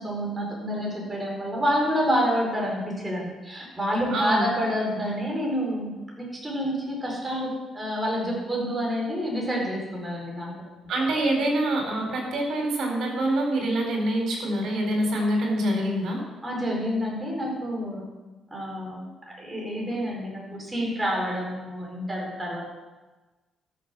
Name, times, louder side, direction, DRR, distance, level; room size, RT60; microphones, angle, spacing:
voice 1, 0.0-5.9 6.2-10.5 16.4-18.0 18.5-22.6, equal, 20° right, -2 dB, 4.9 m, -28 dB
voice 2, 4.1-4.5 10.9-16.2, right 1 dB, 70° right, 0 dB, 4.4 m, -25 dB
13.0 x 7.3 x 6.2 m, 1.2 s
cardioid pair, 90°, 0 cm